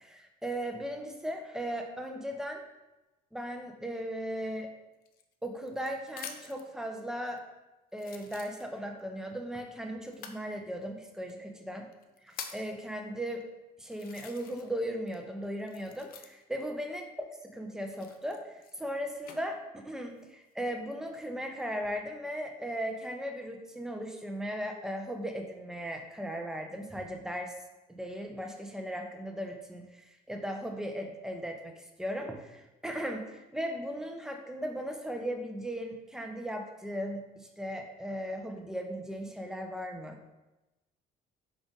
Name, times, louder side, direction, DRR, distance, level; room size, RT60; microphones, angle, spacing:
voice 1, 0.0-2.6 3.3-4.7 5.4-7.4 7.9-11.9 12.2-13.4 13.8-17.1 17.5-27.5 27.9-40.3, equal, 5° right, 3 dB, 0.4 m, -37 dB
sound 1, 5.0-6.7 7.4-7.5 7.9-9.0 10.1-10.4 11.3-11.4 11.9-12.7 13.4-13.5 13.9-14.8 15.1-16.6 17.8-19.4 20.0-20.5, left 7 dB, 60° left, 0.4 m, -47 dB
3.9 x 2.4 x 3.6 m, 1.0 s
cardioid pair, 110°, 17 cm